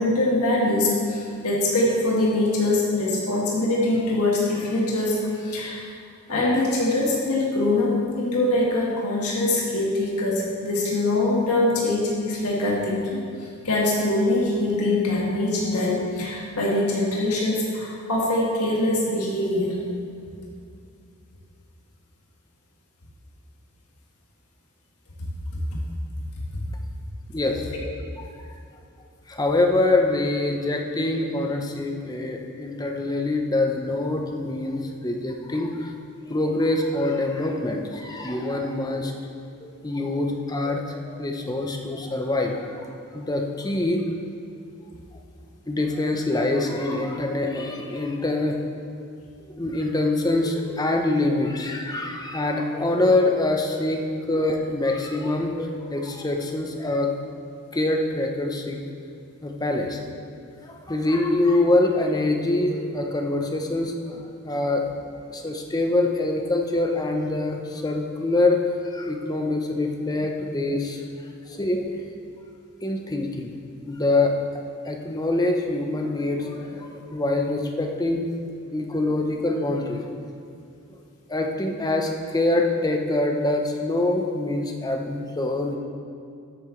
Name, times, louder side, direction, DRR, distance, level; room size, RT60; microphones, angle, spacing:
voice 1, 0.0-5.9 6.3-19.7 25.7-25.8 27.7-27.8, left 2 dB, 90° left, -4 dB, 1.6 m, -23 dB
voice 2, 27.3-27.7 28.2-28.3 29.3-35.9 36.3-39.2 39.6-42.9 43.1-44.0 45.7-48.6 49.4-57.1 57.7-58.8 59.4-60.0 60.6-64.8 65.3-71.0 71.5-71.8 72.8-73.5 73.9-74.3 74.8-78.3 78.7-80.1 80.9-81.0 81.3-85.8, left 2 dB, 15° left, 2 dB, 0.8 m, -25 dB
12.5 x 8.6 x 3.2 m, 2.5 s
head